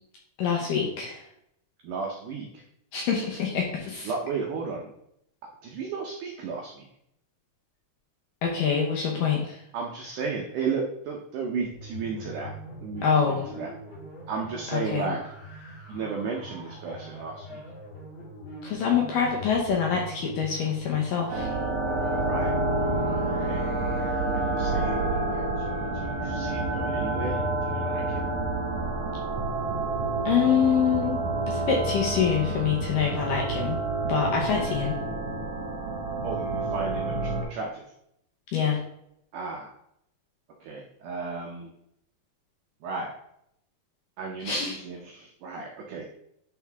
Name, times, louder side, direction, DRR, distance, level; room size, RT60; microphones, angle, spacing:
voice 1, 0.4-1.2 2.9-4.1 8.4-9.6 13.0-13.4 14.7-15.1 18.6-21.6 30.3-31.2 31.5-33.8 34.1-35.0 38.5-38.8 44.5-44.8, left 7 dB, 75° left, -1 dB, 2.1 m, -25 dB
voice 2, 1.8-2.6 4.0-4.9 5.6-6.8 9.7-12.5 12.8-13.7 14.3-15.3 15.9-17.6 22.2-22.5 23.4-23.6 24.3-28.3 36.2-37.8 39.3-39.7 40.6-41.7 42.8-43.1 44.2-46.1, right 4 dB, 85° right, 0 dB, 1.8 m, -34 dB
sound 1, 11.6-27.6, equal, 60° left, 4.4 m, -43 dB
sound 2, 21.3-37.4, right 2 dB, 60° right, 1.7 m, -28 dB
10.0 x 3.6 x 3.5 m, 0.75 s
omnidirectional pair, 4.8 m